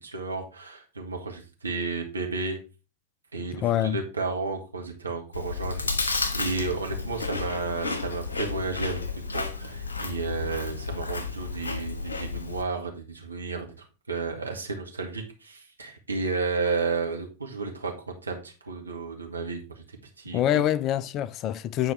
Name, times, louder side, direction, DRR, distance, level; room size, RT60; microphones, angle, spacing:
voice 1, 0.0-2.6 3.3-9.0 9.3-20.6, right 4 dB, 80° right, 1.8 m, -32 dB
voice 2, 3.6-4.0 20.3-21.9, left 11 dB, 35° left, 0.4 m, -25 dB
Chewing mastication, 5.3-12.6, left 4 dB, 75° left, 1.2 m, -32 dB
9.2 x 4.7 x 4.5 m
figure-of-eight pair, 90°, 0 cm